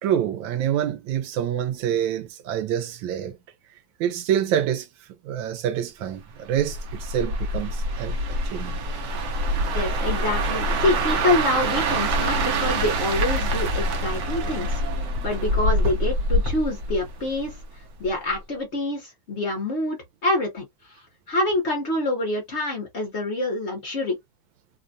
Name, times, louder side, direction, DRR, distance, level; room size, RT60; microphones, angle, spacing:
voice 1, 0.0-3.4 4.0-4.9 5.2-8.8, right 10 dB, 90° right, 1.4 m, -26 dB
sound 1, 6.6-17.7 18.0-18.3, right 1 dB, 65° right, 1.1 m, -25 dB
voice 2, 9.7-17.6 18.0-20.6 21.3-24.2, left 2 dB, 50° left, 0.9 m, -26 dB
3.3 x 2.1 x 2.5 m
omnidirectional pair, 2.0 m